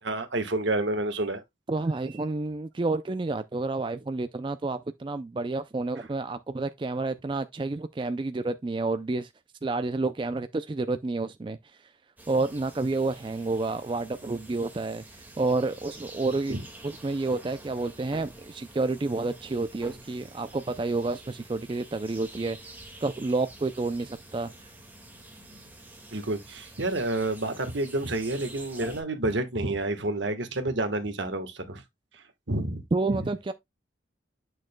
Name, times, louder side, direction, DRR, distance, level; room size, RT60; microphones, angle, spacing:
voice 1, 0.0-1.4 6.0-6.1 16.5-16.6 26.1-31.8 32.1-32.8 33.1-33.3, right 2 dB, 75° right, 1.4 m, -29 dB
voice 2, 1.7-9.3 9.6-11.6 12.3-15.0 15.4-16.6 16.8-22.6 23.0-24.5 32.9-33.5, right 3 dB, 25° right, 0.3 m, -29 dB
sound 1, 12.2-29.0, right 1 dB, 10° right, 1.8 m, -48 dB
8.8 x 6.3 x 2.2 m
head